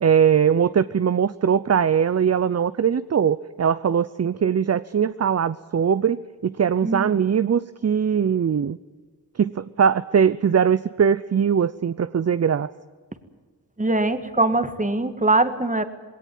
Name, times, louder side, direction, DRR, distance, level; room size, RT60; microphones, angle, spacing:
voice 1, 0.0-8.8 9.4-12.7, right 7 dB, 40° right, 15 dB, 0.6 m, -21 dB
voice 2, 13.8-15.8, right 2 dB, 20° right, 10 dB, 1.8 m, -22 dB
20.0 x 18.0 x 9.4 m, 1.5 s
wide cardioid pair, 70°, 38 cm